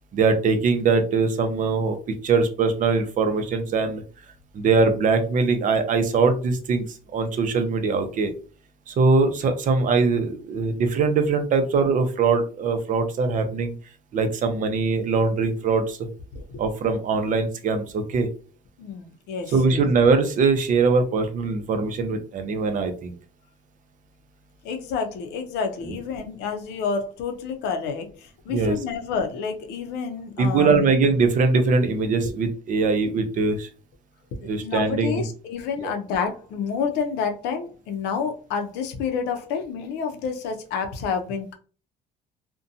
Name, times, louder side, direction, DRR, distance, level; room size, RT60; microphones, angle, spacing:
voice 1, 0.1-4.0 4.5-6.8 7.1-8.3 8.9-13.7 14.1-16.0 16.6-18.3 19.5-23.1 28.5-28.8 30.4-33.7 34.4-35.2 35.8-35.9, right 4 dB, 50° right, 7 dB, 0.6 m, -22 dB
voice 2, 16.3-16.6 18.8-19.8 24.6-30.9 32.2-32.3 34.4-41.5, left 6 dB, 90° left, 5 dB, 0.6 m, -29 dB
2.6 x 2.2 x 2.6 m, 0.38 s
cardioid pair, 110°, 17 cm